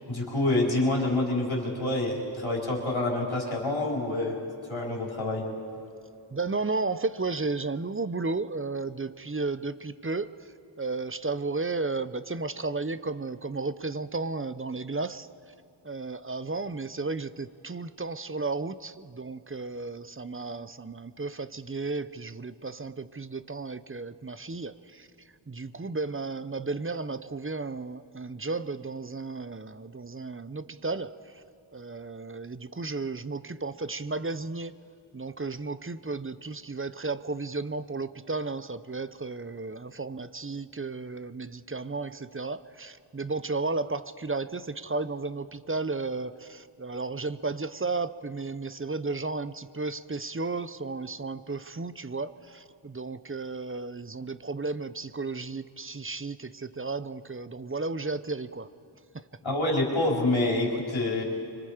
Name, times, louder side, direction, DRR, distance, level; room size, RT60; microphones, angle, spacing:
voice 1, 0.1-4.4 4.7-5.5 59.4-61.2, left 2 dB, 70° left, -3 dB, 4.2 m, -27 dB
voice 2, 6.3-15.3 15.8-25.1 25.5-31.4 31.7-34.8 35.1-58.7 59.1-59.2, right 3 dB, 25° right, 14 dB, 0.6 m, -33 dB
25.5 x 25.0 x 5.0 m, 2.5 s
wide cardioid pair, 55°, 49 cm